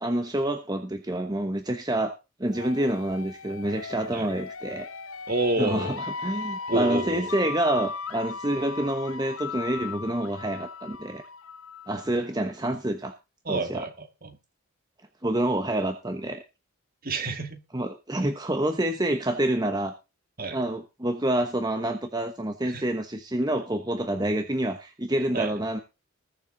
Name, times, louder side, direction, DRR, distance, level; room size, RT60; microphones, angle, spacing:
voice 1, 0.0-2.1 2.4-4.9 5.6-11.2 11.9-13.1 13.5-13.9 15.2-16.4 17.7-19.9 20.5-25.8, right 1 dB, 20° right, 1.1 m, -27 dB
sound 1, 2.5-12.2, left 5 dB, 70° left, 0.8 m, -37 dB
voice 2, 5.3-6.0 6.7-7.3 13.5-14.4 17.0-17.6 20.4-20.6 22.6-22.8 25.3-25.5, right 2 dB, 40° right, 2.4 m, -29 dB
20.0 x 7.4 x 3.9 m
head